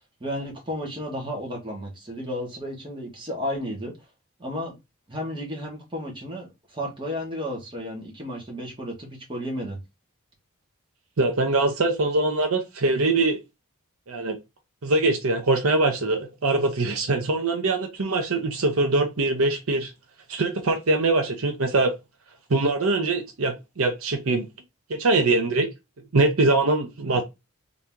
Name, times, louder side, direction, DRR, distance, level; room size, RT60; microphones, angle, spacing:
voice 1, 0.2-3.9 4.4-4.7 5.1-9.8, equal, 20° right, 1.6 m, -33 dB
voice 2, 11.2-13.4 14.1-14.4 14.8-19.9 20.3-21.9 22.5-24.5 24.9-25.7 26.1-27.2, right 2 dB, 70° right, 0.8 m, -23 dB
3.8 x 2.9 x 3.6 m
head